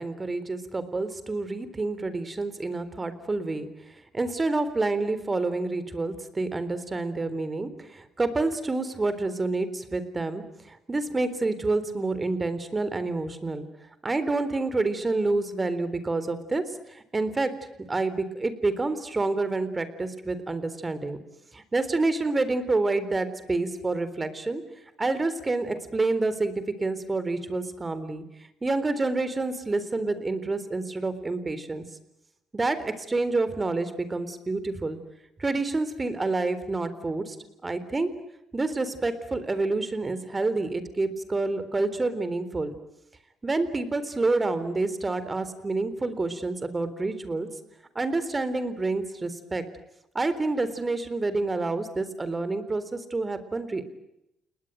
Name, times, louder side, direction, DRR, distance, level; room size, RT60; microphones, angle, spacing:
voice 1, 0.0-3.7 4.1-13.7 14.0-17.5 17.9-21.2 21.5-24.6 25.0-28.2 28.6-31.8 32.5-35.0 35.4-37.4 37.6-38.1 38.5-42.7 43.4-47.5 48.0-49.6 50.1-53.8, right 3 dB, 25° right, 13 dB, 3.9 m, -28 dB
29.5 x 19.5 x 9.3 m, 0.84 s
supercardioid pair, 65°, 0 cm